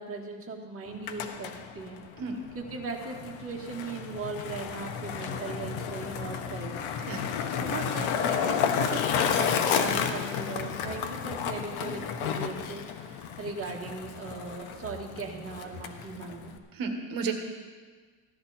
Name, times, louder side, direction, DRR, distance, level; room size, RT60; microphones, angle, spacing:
voice 1, 0.0-2.0 2.5-6.8 7.5-16.5, right 4 dB, 25° right, 0 dB, 1.9 m, -38 dB
Skateboard, 0.9-16.6, left 7 dB, 85° left, 1.3 m, -32 dB
voice 2, 16.8-17.3, right 5 dB, 45° right, 4 dB, 1.8 m, -32 dB
16.0 x 12.0 x 4.3 m, 1.5 s
cardioid pair, 150°, 49 cm